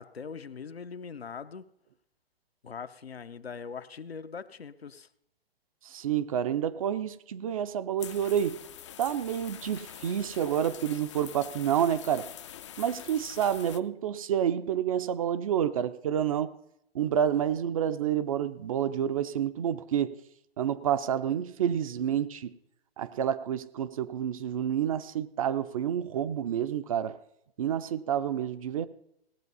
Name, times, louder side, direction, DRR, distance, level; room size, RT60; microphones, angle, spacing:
voice 1, 0.0-1.7 2.6-5.1, left 6 dB, 75° left, 0.8 m, -41 dB
voice 2, 5.8-8.6 9.0-12.3 12.8-16.5 16.9-20.2 20.6-22.5 23.0-27.2 27.6-28.9, right 9 dB, 35° right, 0.5 m, -29 dB
sound 1, 8.0-13.8, left 10 dB, 30° left, 0.4 m, -45 dB
17.5 x 7.6 x 5.4 m
figure-of-eight pair, 120°, 31 cm